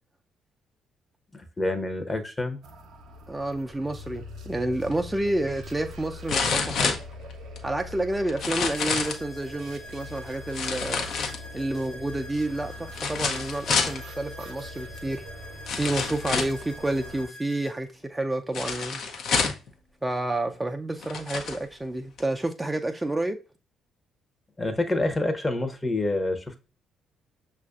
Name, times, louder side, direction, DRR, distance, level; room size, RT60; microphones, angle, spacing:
voice 1, 1.3-2.6 24.6-26.6, left 2 dB, 20° left, 0.8 m, -27 dB
sound 1, 2.6-17.3, left 1 dB, 65° right, 0.6 m, -42 dB
voice 2, 3.3-6.9 7.6-11.1 11.5-15.2 15.7-19.0 20.0-23.4, right 1 dB, 15° right, 0.4 m, -29 dB
sound 2, 4.9-5.0 6.3-7.6 8.3-9.2 10.5-11.7 12.9-14.0 15.0-15.1 15.7-16.6 18.5-19.7 20.5-20.6 21.0-21.6 22.2-22.3, left 5 dB, 60° left, 0.6 m, -28 dB
sound 3, 8.7-17.7, left 1 dB, 85° left, 1.2 m, -46 dB
6.2 x 2.5 x 2.3 m
hypercardioid pair, 50°, 0 cm